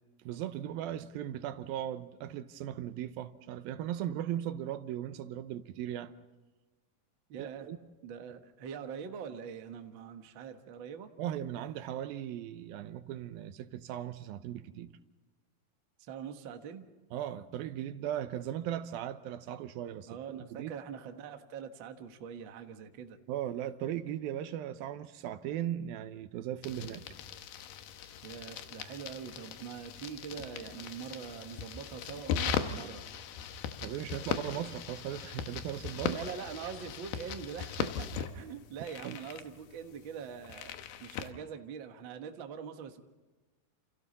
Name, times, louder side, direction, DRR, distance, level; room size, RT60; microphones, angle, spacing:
voice 1, 0.3-6.1 7.4-7.8 11.2-14.9 17.1-20.7 23.3-27.0 33.8-36.2 39.0-39.2, right 11 dB, 85° right, 2.7 m, -38 dB
voice 2, 7.3-7.7 8.0-11.1 16.1-16.8 20.1-23.2 28.2-33.0 36.1-40.7 41.0-43.0, right 7 dB, 55° right, 1.4 m, -43 dB
sound 1, 26.6-41.3, left 8 dB, 85° left, 3.0 m, -39 dB
29.5 x 28.5 x 4.2 m
omnidirectional pair, 4.2 m